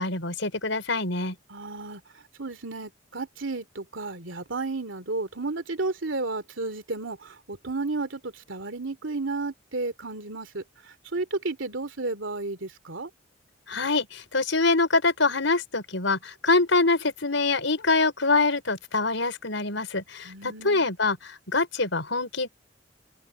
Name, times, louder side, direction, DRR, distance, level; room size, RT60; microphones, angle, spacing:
voice 1, 0.0-1.4 13.7-22.5, left 3 dB, 80° left, 5.2 m, -25 dB
voice 2, 1.5-2.0 2.4-10.6 11.1-13.1 20.2-20.9, right 3 dB, 80° right, 2.7 m, -32 dB
open air
head